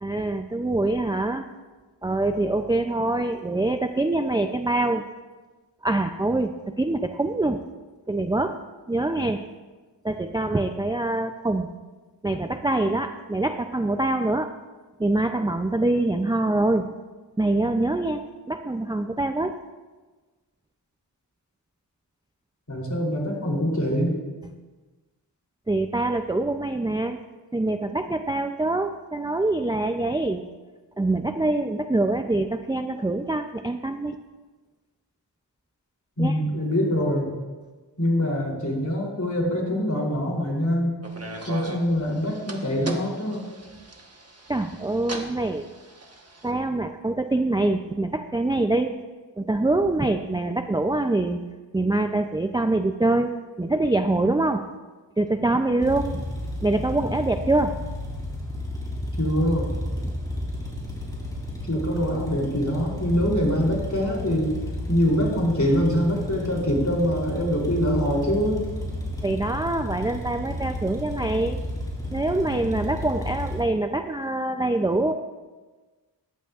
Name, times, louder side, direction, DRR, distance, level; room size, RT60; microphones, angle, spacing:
voice 1, 0.0-1.5 2.0-5.1 5.8-7.6 8.1-8.6 8.9-9.4 10.0-11.7 12.2-14.5 15.0-17.0 17.4-19.6 25.7-27.2 27.5-30.4 31.0-34.2 36.2-36.4 44.5-45.7 46.4-49.0 49.4-51.4 51.7-54.7 55.2-56.2 56.6-57.8 69.2-71.6 72.1-75.1, right 2 dB, 10° right, 6 dB, 0.4 m, -24 dB
voice 2, 22.7-24.2 36.2-37.3 38.0-40.9 41.5-43.4 59.2-59.7 61.6-64.5 64.9-68.7, equal, 40° left, -2 dB, 3.2 m, -24 dB
sound 1, 41.0-46.5, right 2 dB, 35° right, 1.3 m, -39 dB
sound 2, 55.8-73.6, left 1 dB, 10° left, 3.1 m, -32 dB
14.0 x 11.0 x 2.4 m, 1.3 s
wide cardioid pair, 60°, 44 cm